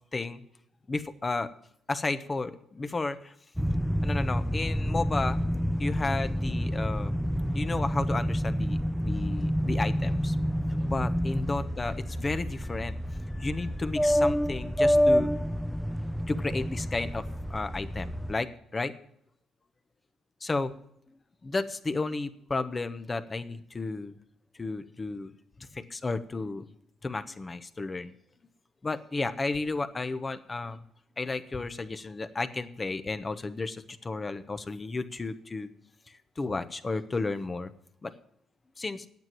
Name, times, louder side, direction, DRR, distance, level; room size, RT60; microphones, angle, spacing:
voice 1, 0.9-1.5 1.9-3.3 4.0-5.4 5.8-7.1 7.5-10.4 10.8-12.9 13.3-15.3 16.3-18.9 20.4-20.7 21.4-24.2 24.5-25.3 25.6-26.7 27.0-28.1 28.8-30.8 31.2-35.7 36.1-37.7 38.0-38.1 38.8-39.1, left 3 dB, 30° left, 11 dB, 1.0 m, -33 dB
sound 1, 3.6-18.3, equal, ahead, 0.5 m, -28 dB
9.5 x 7.6 x 9.3 m, 0.70 s
supercardioid pair, 60°, 0 cm